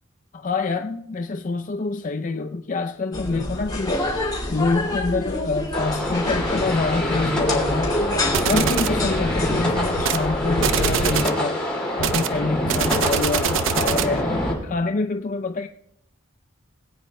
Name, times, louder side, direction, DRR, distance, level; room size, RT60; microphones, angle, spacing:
voice 1, 0.3-4.0 4.5-7.9 8.5-11.6 12.0-15.7, left 3 dB, 40° left, 0.5 m, -26 dB
sound 1, 3.1-11.1, left 1 dB, 20° left, 2.8 m, -27 dB
sound 2, 5.7-14.5, left 1 dB, 5° left, 2.9 m, -26 dB
sound 3, 8.3-9.0 10.0-10.3 10.6-11.4 12.0-14.2, right 8 dB, 70° right, 0.5 m, -24 dB
21.0 x 8.8 x 3.1 m
head